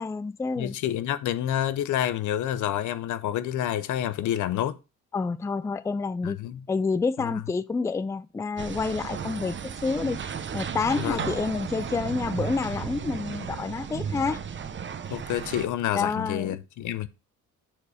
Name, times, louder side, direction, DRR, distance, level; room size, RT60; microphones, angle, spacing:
voice 1, 0.0-0.8 5.1-6.4 6.7-10.2 10.5-14.4 15.9-16.6, left 4 dB, 10° left, 0.3 m, -28 dB
voice 2, 0.6-4.8 6.2-6.6 7.2-7.4 11.0-11.2 15.1-17.1, left 11 dB, 75° left, 0.7 m, -28 dB
sound 1, 8.6-15.7, right 7 dB, 40° right, 0.8 m, -34 dB
7.4 x 4.1 x 4.9 m
cardioid pair, 90°, 30 cm